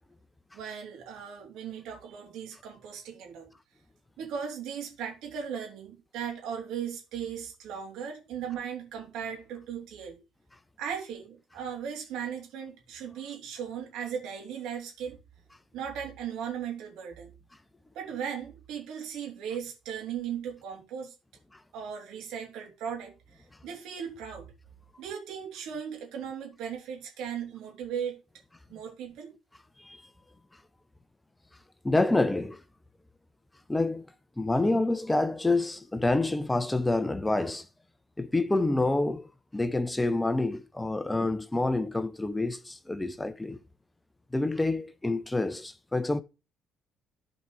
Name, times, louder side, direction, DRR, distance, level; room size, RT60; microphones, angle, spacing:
voice 1, 0.5-3.5 4.2-10.2 10.8-15.2 15.7-17.3 17.9-21.1 21.7-23.1 23.6-24.5 25.0-28.2 28.7-29.3, right 8 dB, 70° right, 3.3 m, -37 dB
voice 2, 31.8-32.6 33.7-34.1 34.4-37.6 38.2-43.6 44.3-46.2, left 2 dB, 15° left, 1.0 m, -27 dB
13.5 x 5.1 x 3.3 m
hypercardioid pair, 55°, 0 cm